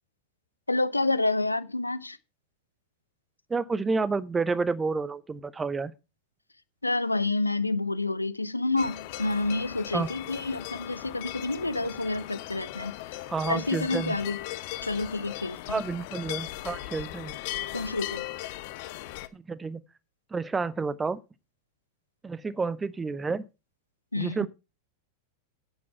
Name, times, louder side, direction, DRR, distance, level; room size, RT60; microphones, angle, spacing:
voice 1, 0.7-2.2 6.8-12.9 13.5-14.4 14.8-15.6 17.7-18.3 24.1-24.5, left 2 dB, 85° left, 0.6 m, -28 dB
voice 2, 3.5-5.9 9.9-10.1 13.3-14.2 15.7-17.4 19.3-19.8 20.3-21.2 22.2-23.4 24.1-24.5, right 4 dB, 15° right, 0.7 m, -30 dB
sound 1, 8.8-19.3, left 16 dB, 50° left, 0.9 m, -38 dB
11.5 x 8.6 x 4.5 m
figure-of-eight pair, 90°, 0 cm